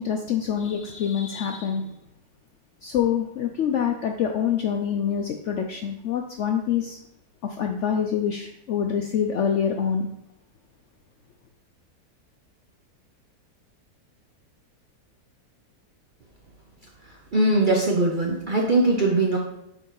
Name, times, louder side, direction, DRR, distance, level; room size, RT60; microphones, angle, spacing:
voice 1, 0.0-1.9 2.8-7.0 7.4-10.1, left 8 dB, 70° left, 3 dB, 0.7 m, -26 dB
voice 2, 17.3-19.4, right 2 dB, 50° right, -1 dB, 0.6 m, -21 dB
6.2 x 4.6 x 3.9 m, 0.80 s
omnidirectional pair, 1.7 m